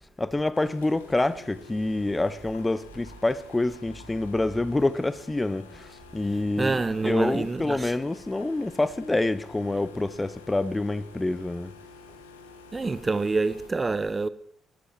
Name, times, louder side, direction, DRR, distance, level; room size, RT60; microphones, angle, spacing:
voice 1, 0.2-5.8 6.1-11.7, left 2 dB, 20° left, 0.7 m, -27 dB
sound 1, 0.5-13.7, left 4 dB, 90° left, 1.3 m, -50 dB
voice 2, 6.6-7.9 12.7-14.3, right 3 dB, 30° right, 0.7 m, -26 dB
19.5 x 13.5 x 3.1 m
hypercardioid pair, 45°, 0 cm